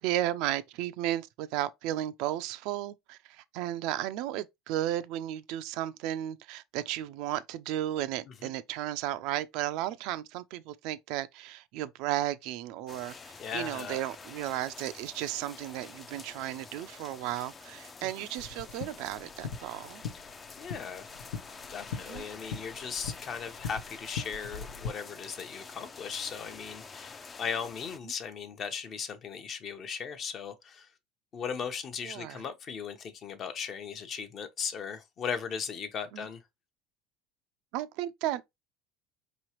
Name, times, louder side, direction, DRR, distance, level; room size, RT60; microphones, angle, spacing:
voice 1, 0.0-20.0 21.9-22.2 32.0-32.4 36.1-36.3 37.7-38.4, right 13 dB, 65° right, 0.4 m, -34 dB
sound 1, 12.9-28.0, left 4 dB, 25° left, 0.5 m, -48 dB
voice 2, 13.4-14.0 18.0-18.1 20.1-20.2 20.6-21.1 21.7-30.9 31.3-36.4, left 6 dB, 40° left, 0.8 m, -37 dB
sound 2, 18.4-24.9, left 5 dB, 85° left, 0.9 m, -41 dB
4.8 x 3.0 x 2.9 m
supercardioid pair, 115°, 0 cm